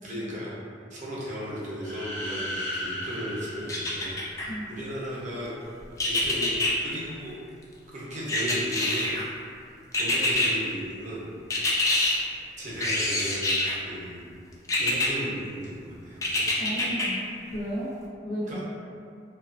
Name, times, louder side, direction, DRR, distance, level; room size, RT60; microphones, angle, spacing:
voice 1, 0.0-0.5 0.9-5.5 6.0-6.5 6.8-7.3 7.9-9.1 9.9-11.3 12.6-13.5 13.8-14.3 14.8-16.4 18.5-18.6, equal, 45° right, -6 dB, 0.6 m, -36 dB
sound 1, 1.7-4.7, equal, 75° left, 1.0 m, -36 dB
sound 2, 3.7-4.5 6.0-6.7 8.3-9.2 9.9-10.5 11.5-12.1 12.8-13.8 14.7-15.1 16.2-17.1 17.5-17.6, left 2 dB, 20° left, 0.3 m, -25 dB
voice 2, 16.6-17.2 17.5-17.9 18.2-18.6, equal, 45° left, -11 dB, 0.7 m, -33 dB
2.8 x 2.3 x 2.4 m, 2.3 s
head